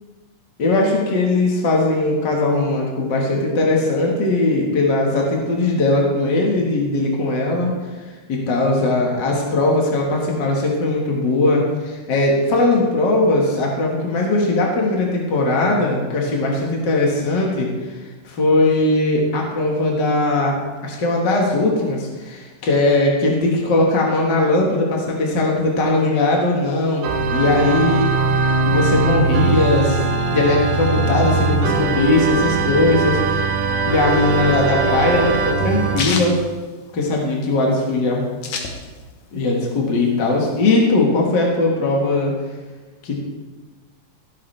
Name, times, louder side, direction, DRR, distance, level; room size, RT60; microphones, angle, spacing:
voice 1, 0.6-7.7 8.0-28.1 28.6-30.0 30.3-33.5 33.8-36.4 36.9-38.2 39.3-42.3 43.0-43.2, left 2 dB, 45° left, -2 dB, 1.7 m, -19 dB
Organ, 27.0-36.1, right 4 dB, 80° right, 2.8 m, -20 dB
sound 1, 34.2-37.4 37.7-37.8 38.0-39.3 39.6-40.8, left 4 dB, 65° left, 2.5 m, -29 dB
14.5 x 12.5 x 3.3 m, 1.3 s
omnidirectional pair, 3.8 m